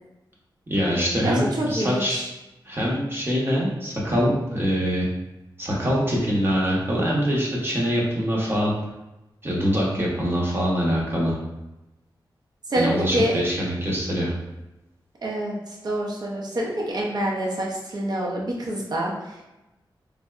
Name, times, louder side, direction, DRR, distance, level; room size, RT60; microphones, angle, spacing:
voice 1, 0.7-2.2 2.6-5.1 5.6-8.7 9.4-11.4 12.7-14.3, equal, 30° right, -4 dB, 0.9 m, -24 dB
voice 2, 1.2-2.2 12.7-13.3 15.2-15.5 15.8-19.1, right 1 dB, 55° right, -2 dB, 0.7 m, -26 dB
3.3 x 2.7 x 2.4 m, 0.98 s
wide cardioid pair, 120°, 8 cm